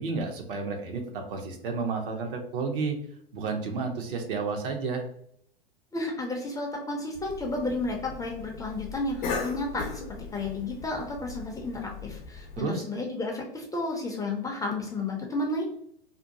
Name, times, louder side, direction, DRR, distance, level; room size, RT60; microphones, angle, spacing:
voice 1, 0.0-3.0 3.3-5.1 12.6-12.8, right 4 dB, 65° right, 3 dB, 0.7 m, -31 dB
voice 2, 5.9-15.6, left 2 dB, 10° left, 0 dB, 0.4 m, -32 dB
Cough, 7.1-12.6, left 4 dB, 55° left, 0.6 m, -38 dB
2.6 x 2.2 x 2.6 m, 0.67 s
hypercardioid pair, 100°, 30 cm